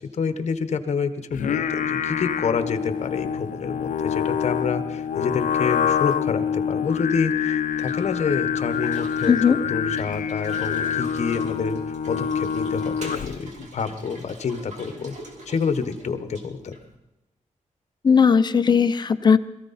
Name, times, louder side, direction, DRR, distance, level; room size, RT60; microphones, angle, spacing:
voice 1, 0.1-9.3 9.7-15.1 15.5-16.7, left 5 dB, 60° left, 9 dB, 1.2 m, -28 dB
Singing, 1.3-13.5, left 8 dB, 80° left, 0.6 m, -26 dB
sound 1, 7.7-17.0, right 1 dB, 60° right, 2.6 m, -45 dB
voice 2, 9.3-9.6 18.0-19.4, left 6 dB, 35° left, 10 dB, 0.7 m, -17 dB
22.0 x 14.5 x 4.2 m, 0.99 s
wide cardioid pair, 150°, 13 cm